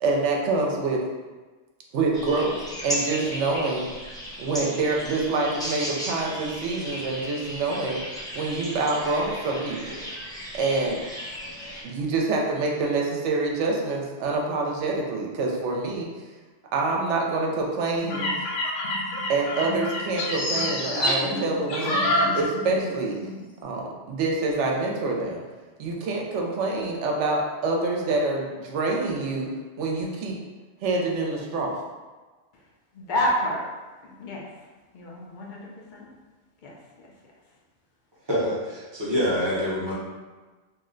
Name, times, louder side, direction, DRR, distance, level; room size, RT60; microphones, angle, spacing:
voice 1, 0.0-1.0 1.9-3.9 4.4-8.0 8.3-10.0 10.5-11.0 11.8-16.1 16.7-18.3 19.3-23.2 23.6-25.4 25.8-29.5 29.8-30.4 30.8-31.8, right 3 dB, 75° right, -1 dB, 0.9 m, -26 dB
sound 1, 2.1-11.8, equal, 5° left, 0.4 m, -35 dB
sound 2, 18.0-22.9 23.2-23.5, left 1 dB, 75° left, 0.9 m, -27 dB
voice 2, 32.9-33.6 34.0-34.7 34.9-36.1 36.6-37.1, equal, 50° left, -3 dB, 0.6 m, -29 dB
voice 3, 38.3-39.9, equal, 25° right, -9 dB, 0.7 m, -26 dB
2.7 x 2.1 x 3.7 m, 1.3 s
omnidirectional pair, 1.2 m